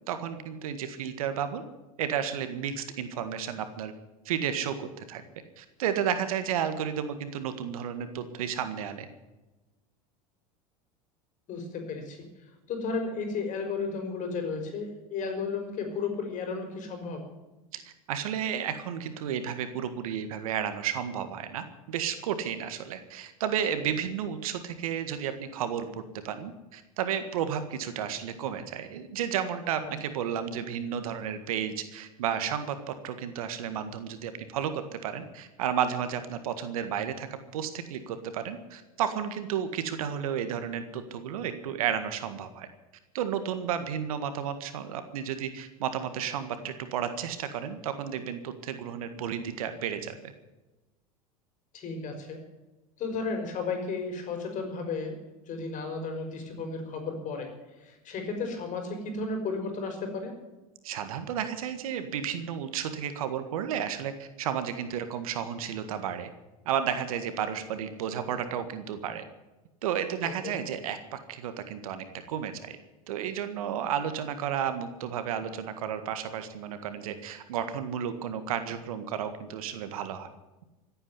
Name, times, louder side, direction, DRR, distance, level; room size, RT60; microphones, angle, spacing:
voice 1, 0.1-1.6 2.0-3.9 4.3-5.2 5.6-9.1 17.7-34.7 35.0-42.7 43.1-50.1 60.8-66.3 66.7-69.2 69.8-72.8 73.1-80.3, right 8 dB, 75° right, 10 dB, 1.8 m, -32 dB
voice 2, 11.5-12.3 12.7-17.2 29.8-29.9 51.7-52.4 53.0-55.2 55.5-57.5 57.8-60.3 70.2-70.5, left 4 dB, 45° left, 4 dB, 5.6 m, -33 dB
16.0 x 8.9 x 9.5 m, 1.1 s
hypercardioid pair, 90°, 18 cm